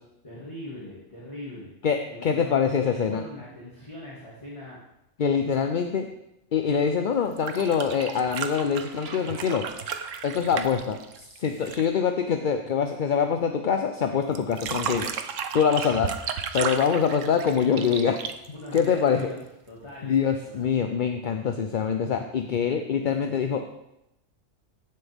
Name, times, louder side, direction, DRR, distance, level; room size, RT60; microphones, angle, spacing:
voice 1, 0.2-1.7 2.1-2.6 2.8-4.8 5.4-5.7 18.5-20.6, left 1 dB, 25° left, -7 dB, 2.4 m, -41 dB
voice 2, 1.8-3.2 5.2-6.1 6.5-10.0 10.2-15.1 15.5-16.1 16.5-18.2 18.7-19.3 20.0-23.7, left 7 dB, 50° left, 6 dB, 0.7 m, -24 dB
sound 1, 7.3-11.9 14.4-19.2 20.6-20.7, right 7 dB, 75° right, 1.2 m, -34 dB
sound 2, 7.9-10.9, right 3 dB, 55° right, 1.5 m, -48 dB
15.0 x 7.7 x 3.6 m, 0.86 s
omnidirectional pair, 1.3 m